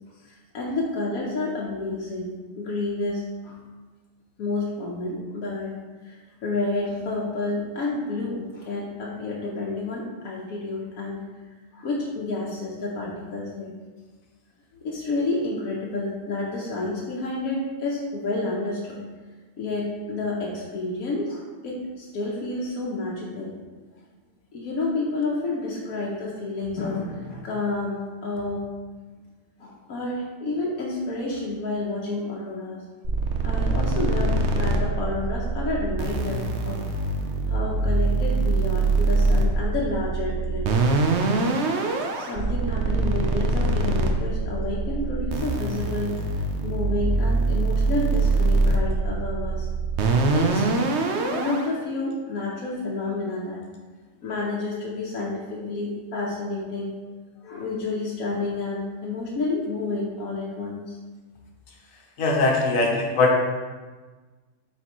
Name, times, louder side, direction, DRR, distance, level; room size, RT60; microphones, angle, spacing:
voice 1, 0.3-3.6 4.4-5.7 6.0-11.2 11.7-13.7 14.8-19.0 19.6-23.6 24.5-28.7 29.6-32.8 33.4-37.0 37.5-41.1 41.7-46.3 46.6-49.7 50.3-53.6 54.2-56.9 57.4-61.0, left 2 dB, 90° left, -4 dB, 1.3 m, -30 dB
sound 1, 33.0-51.6, right 3 dB, 60° right, 0.9 m, -24 dB
voice 2, 62.2-63.4, left 2 dB, 75° left, 0 dB, 1.3 m, -20 dB
7.7 x 4.2 x 3.0 m, 1.3 s
omnidirectional pair, 1.4 m